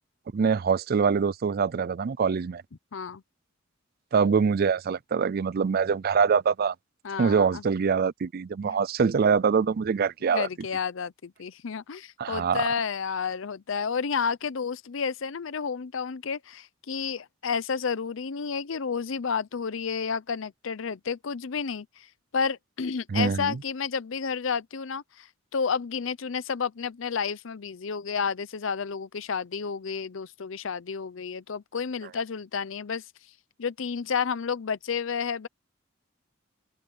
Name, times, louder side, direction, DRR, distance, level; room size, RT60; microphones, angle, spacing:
voice 1, 0.3-2.6 4.1-6.7 7.2-10.5 12.2-12.7 23.1-23.5, right 6 dB, 50° right, 0.4 m, -24 dB
voice 2, 2.9-3.2 7.0-7.6 8.7-8.8 10.2-22.1 22.3-25.3 25.5-33.0 33.6-35.5, left 6 dB, 70° left, 0.6 m, -31 dB
head